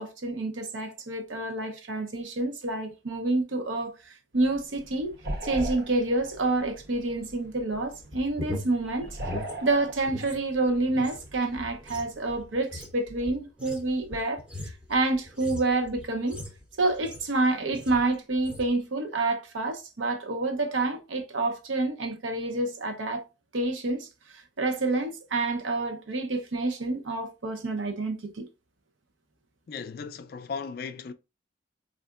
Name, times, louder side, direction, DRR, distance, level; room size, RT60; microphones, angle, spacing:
voice 1, 0.0-5.1 5.4-9.2 9.6-16.4 16.8-23.3 23.5-24.1 24.3-28.5, right 2 dB, 85° right, 0.7 m, -28 dB
sound 1, 4.3-12.6, right 1 dB, 55° right, 0.8 m, -41 dB
sound 2, 8.0-10.4 10.7-17.4 17.7-18.1 18.4-18.7, left 1 dB, 5° right, 0.5 m, -40 dB
voice 2, 29.7-31.1, left 5 dB, 50° left, 0.3 m, -36 dB
4.4 x 2.5 x 2.3 m
head